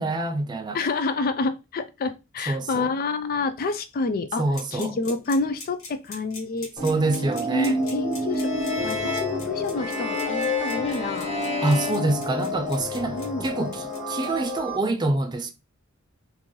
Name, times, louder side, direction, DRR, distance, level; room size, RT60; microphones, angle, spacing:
voice 1, 0.0-0.8 2.5-2.9 4.4-4.9 6.8-7.8 11.6-15.5, right 2 dB, 20° right, 0.4 m, -26 dB
voice 2, 0.7-4.4 4.7-6.7 7.2-8.5 8.8-11.3 13.1-13.4, left 3 dB, 45° left, 0.4 m, -28 dB
sound 1, 4.5-14.5, left 3 dB, 70° left, 1.2 m, -42 dB
sound 2, 6.8-14.8, left 1 dB, 5° right, 1.1 m, -30 dB
sound 3, 8.3-12.9, left 3 dB, 30° left, 1.1 m, -32 dB
3.7 x 2.6 x 3.0 m
head